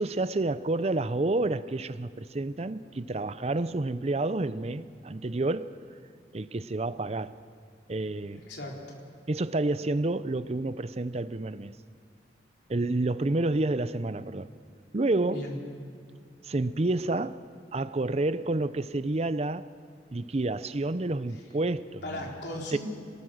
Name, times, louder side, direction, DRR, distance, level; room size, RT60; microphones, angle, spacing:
voice 1, 0.0-5.8 6.3-7.3 7.9-8.4 9.3-11.7 12.7-14.5 14.9-15.5 16.4-17.4 17.7-19.7 20.1-22.0 22.7-22.8, right 2 dB, 35° right, 0.6 m, -29 dB
voice 2, 8.3-9.0 15.2-15.6 22.0-22.8, left 1 dB, 65° left, 4.1 m, -37 dB
27.5 x 19.5 x 6.5 m
head